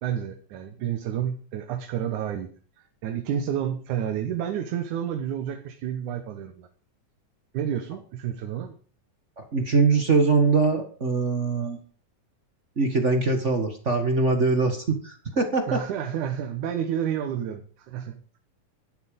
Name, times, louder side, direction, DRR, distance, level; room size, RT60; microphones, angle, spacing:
voice 1, 0.0-2.5 3.0-6.7 7.5-8.8 15.7-18.4, right 9 dB, 80° right, 7 dB, 2.6 m, -30 dB
voice 2, 9.5-11.8 12.8-15.8, right 3 dB, 35° right, 6 dB, 1.2 m, -22 dB
12.5 x 12.0 x 5.2 m, 0.41 s
omnidirectional pair, 3.5 m